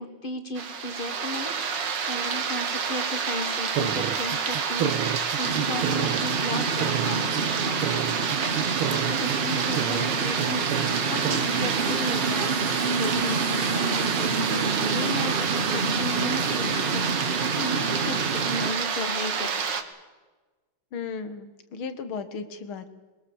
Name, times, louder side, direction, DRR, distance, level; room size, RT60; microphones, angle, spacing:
voice 1, 0.0-7.7 8.8-10.7 11.1-19.8, left 1 dB, 25° left, 8 dB, 1.6 m, -35 dB
sound 1, 0.6-19.8, right 6 dB, 60° right, 2.1 m, -28 dB
sound 2, 3.7-7.4 7.8-10.1 10.4-10.9 11.2-11.4, right 10 dB, 90° right, 1.9 m, -30 dB
sound 3, 5.4-18.7, right 4 dB, 40° right, 0.8 m, -29 dB
voice 2, 20.9-22.9, left 5 dB, 75° left, 10 dB, 2.3 m, -35 dB
22.0 x 21.0 x 7.2 m, 1.3 s
omnidirectional pair, 2.3 m